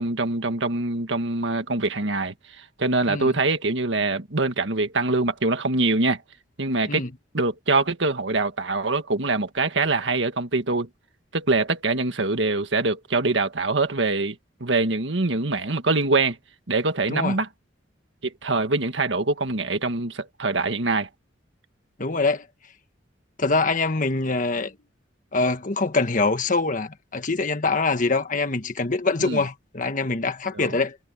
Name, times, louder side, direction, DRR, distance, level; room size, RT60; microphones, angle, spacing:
voice 1, 0.0-6.2 6.6-7.1 7.3-10.9 11.3-16.4 16.7-17.5 18.2-21.1 29.2-29.4 30.5-30.7, right 3 dB, 80° right, 1.6 m, -24 dB
voice 2, 22.0-22.5 23.4-24.7 25.3-31.0, left 3 dB, 45° left, 1.5 m, -24 dB
head